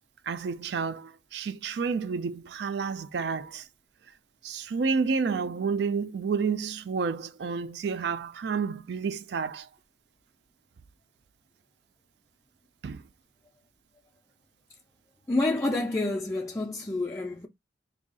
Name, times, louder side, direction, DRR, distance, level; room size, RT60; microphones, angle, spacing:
voice 1, 0.3-3.7 4.4-9.7 12.8-13.0, right 5 dB, 65° right, 0.3 m, -30 dB
voice 2, 15.3-17.5, left 2 dB, 15° left, 0.3 m, -28 dB
2.7 x 2.3 x 3.9 m
head